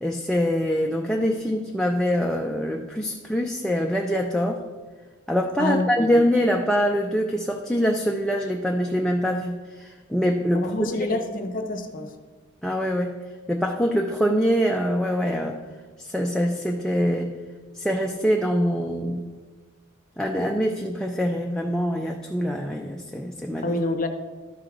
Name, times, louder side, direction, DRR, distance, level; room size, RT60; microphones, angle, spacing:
voice 1, 0.0-4.6 5.3-11.2 12.6-13.1 13.5-15.6 16.0-17.3 17.7-19.3 20.2-23.8, equal, 5° left, 1 dB, 0.4 m, -24 dB
voice 2, 5.6-6.1 10.5-12.1 23.6-24.1, left 2 dB, 40° left, 7 dB, 0.7 m, -27 dB
12.5 x 4.5 x 3.8 m, 1.4 s
head